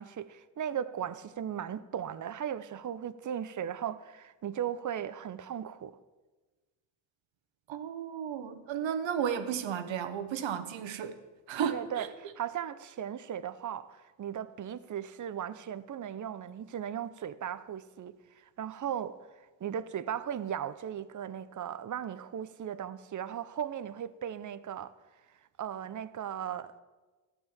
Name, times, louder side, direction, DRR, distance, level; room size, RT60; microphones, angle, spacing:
voice 1, 0.0-6.0 11.7-19.2 19.6-24.9 25.6-26.8, right 9 dB, 35° right, 0.8 m, -37 dB
voice 2, 7.7-11.2 11.5-12.1, right 8 dB, 65° right, 1.3 m, -33 dB
13.0 x 8.1 x 7.3 m
supercardioid pair, 60°, 49 cm